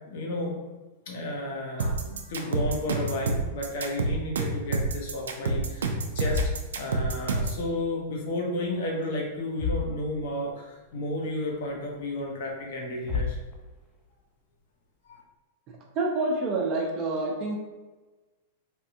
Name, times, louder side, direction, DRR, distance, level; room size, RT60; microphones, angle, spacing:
voice 1, 0.1-0.5 1.1-6.4 6.7-13.4 15.1-15.2, left 1 dB, 65° left, -1 dB, 0.8 m, -32 dB
sound 1, 1.8-7.6, right 3 dB, 90° right, 0.4 m, -28 dB
sound 2, 6.2-7.9 8.2-8.9 9.2-9.3 9.5-10.5 10.9-11.0 11.6-11.7 12.7-12.8 13.0-14.1, left 5 dB, 15° left, 0.5 m, -35 dB
voice 2, 16.0-17.5, right 2 dB, 40° right, 0 dB, 0.7 m, -27 dB
3.3 x 2.2 x 2.7 m, 1.2 s
hypercardioid pair, 120°, 0 cm